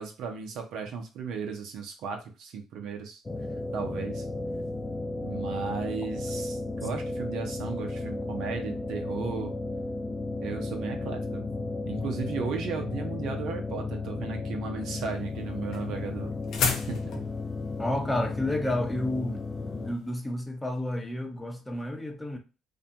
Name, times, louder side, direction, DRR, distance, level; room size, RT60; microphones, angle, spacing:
voice 1, 0.0-3.2 3.7-4.3 5.2-9.5 10.4-11.5 11.9-16.3 16.6-17.2, right 6 dB, 70° right, 0.5 m, -35 dB
sound 1, 3.3-20.0, left 3 dB, 25° left, 0.4 m, -34 dB
sound 2, 14.8-20.0, left 5 dB, 65° left, 0.6 m, -34 dB
voice 2, 17.8-19.4 19.7-22.4, left 1 dB, 10° left, 0.7 m, -30 dB
2.5 x 2.2 x 2.7 m
hypercardioid pair, 55°, 0 cm